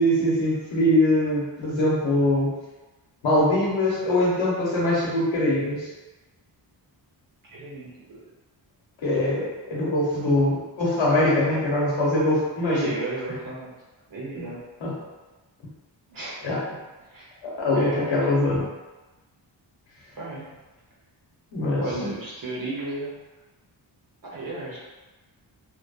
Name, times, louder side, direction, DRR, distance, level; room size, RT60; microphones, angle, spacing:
voice 1, 0.0-2.5 3.2-5.9 9.0-12.9 14.4-14.5 14.8-15.0 16.4-16.6 17.4-18.6 21.5-21.9, left 1 dB, 90° left, -5 dB, 0.9 m, -22 dB
voice 2, 7.4-8.2 12.7-13.7 14.1-14.6 16.1-16.3 16.7-16.8 17.1-17.3 17.7-18.1 20.1-20.5 21.7-23.1 24.2-24.8, right 2 dB, 50° right, -7 dB, 0.9 m, -33 dB
2.7 x 2.2 x 2.3 m, 1.2 s
wide cardioid pair, 165°, 44 cm